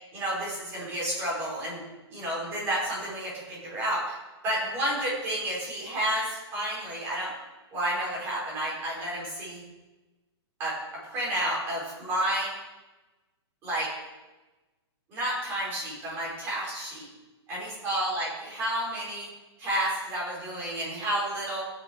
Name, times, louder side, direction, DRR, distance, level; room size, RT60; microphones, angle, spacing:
voice 1, 0.1-1.8 2.1-4.2 4.4-7.3 7.7-9.6 10.6-12.5 13.6-13.9 15.1-17.1 17.5-19.3 19.6-21.6, right 1 dB, 15° right, -6 dB, 5.2 m, -31 dB
15.5 x 10.5 x 4.8 m, 1.1 s
hypercardioid pair, 175°, 15 cm